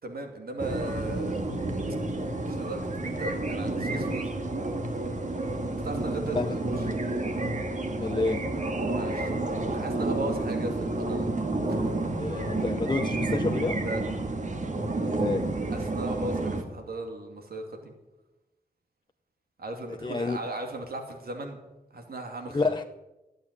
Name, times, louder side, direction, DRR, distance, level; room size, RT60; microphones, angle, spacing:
voice 1, 0.0-1.4 2.4-4.4 5.8-6.8 8.9-11.3 11.7-11.9 13.8-14.0 15.7-17.9 19.6-21.6 21.9-22.8, right 2 dB, 75° right, 2.6 m, -37 dB
sound 1, 0.6-16.6, right 2 dB, 50° right, 2.1 m, -30 dB
voice 2, 8.0-8.5 12.2-13.9 15.0-15.5 19.9-20.4 22.5-22.8, left 3 dB, 30° left, 0.7 m, -29 dB
15.5 x 9.0 x 9.9 m
wide cardioid pair, 75°, 16 cm